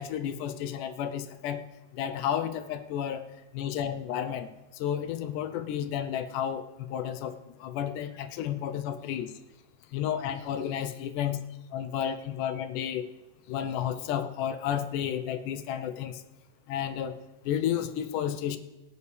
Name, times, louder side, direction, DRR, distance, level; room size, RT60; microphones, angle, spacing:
voice 1, 0.0-1.7 1.9-3.3 3.5-9.3 9.9-11.4 11.7-13.1 13.5-16.2 16.7-17.2 17.4-18.6, left 9 dB, 80° left, 9 dB, 2.1 m, -32 dB
23.5 x 9.8 x 3.3 m, 1.0 s
omnidirectional pair, 3.8 m